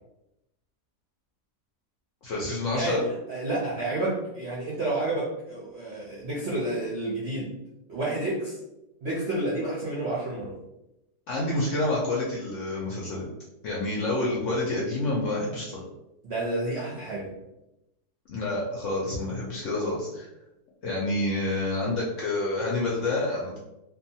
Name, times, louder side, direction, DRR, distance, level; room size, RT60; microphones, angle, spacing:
voice 1, 2.2-3.0 11.3-13.3 13.6-15.8 18.3-20.3 20.8-23.6, left 2 dB, 65° left, -4 dB, 0.8 m, -28 dB
voice 2, 2.7-7.5 7.9-8.6 9.0-10.6 16.2-17.3, right 2 dB, 60° right, -6 dB, 0.7 m, -30 dB
2.6 x 2.3 x 2.7 m, 0.90 s
omnidirectional pair, 1.8 m